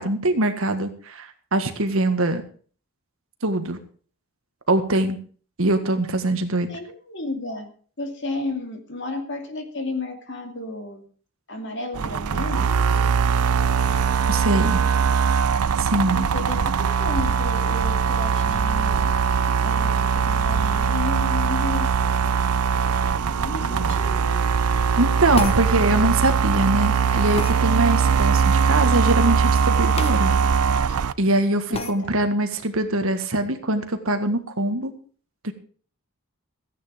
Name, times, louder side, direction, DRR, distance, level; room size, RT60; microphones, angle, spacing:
voice 1, 0.0-2.4 3.4-3.8 4.7-5.2 5.6-6.7 14.3-14.8 15.8-16.2 25.0-30.3 31.2-34.9 35.4-35.5, right 2 dB, 65° right, 7 dB, 1.7 m, -23 dB
voice 2, 6.7-7.7 8.0-11.1 11.5-12.7 16.1-19.2 19.6-22.3 23.2-24.4 30.9-31.0 31.7-32.1, left 2 dB, 55° left, 5 dB, 2.5 m, -32 dB
sound 1, 11.9-31.1, right 6 dB, 90° right, 0.6 m, -21 dB
sound 2, 25.3-25.6 27.4-27.6 30.0-30.2 30.5-30.6 31.7-31.9, left 3 dB, 25° left, 1.2 m, -29 dB
15.0 x 10.0 x 5.1 m, 0.44 s
head